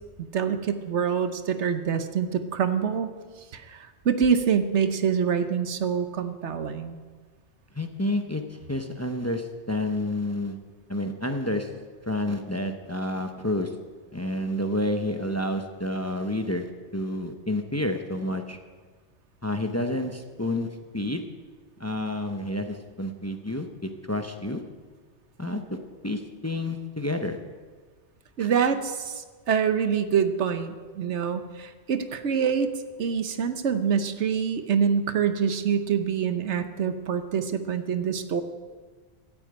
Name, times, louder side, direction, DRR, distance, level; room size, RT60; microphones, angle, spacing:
voice 1, 0.3-3.1 3.5-7.0 28.4-32.7 33.0-38.4, right 7 dB, 80° right, 10 dB, 1.2 m, -25 dB
voice 2, 7.7-10.6 10.9-11.7 12.1-13.7 14.1-16.7 16.9-18.6 19.4-20.7 20.9-21.3 21.8-24.6 25.4-25.8 26.0-27.4 28.4-28.5, left 1 dB, 15° left, 6 dB, 0.8 m, -29 dB
13.0 x 8.4 x 8.9 m, 1.5 s
omnidirectional pair, 1.2 m